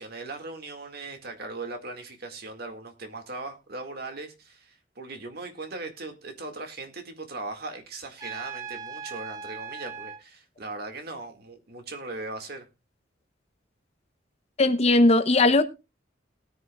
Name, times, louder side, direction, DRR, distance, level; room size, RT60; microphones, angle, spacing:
voice 1, 0.0-12.7, right 3 dB, 60° right, 2.0 m, -39 dB
Trumpet, 8.2-10.2, right 6 dB, 20° right, 2.9 m, -38 dB
voice 2, 14.6-15.6, left 2 dB, 35° left, 0.8 m, -19 dB
19.5 x 9.4 x 2.3 m
head